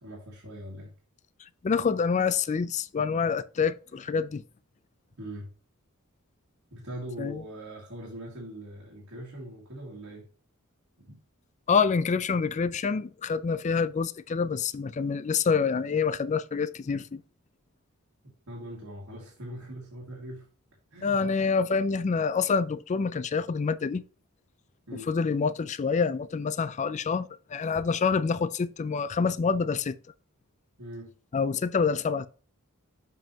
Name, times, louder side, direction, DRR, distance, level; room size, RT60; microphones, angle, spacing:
voice 1, 0.0-0.9 5.2-5.5 6.7-10.3 11.0-11.2 18.5-20.5 20.9-21.2 24.9-25.1 30.8-31.1, right 1 dB, 70° right, 2.1 m, -41 dB
voice 2, 1.6-4.4 7.2-7.4 11.7-17.2 21.0-24.0 25.1-30.0 31.3-32.3, left 5 dB, 35° left, 0.4 m, -27 dB
7.5 x 5.5 x 2.8 m
head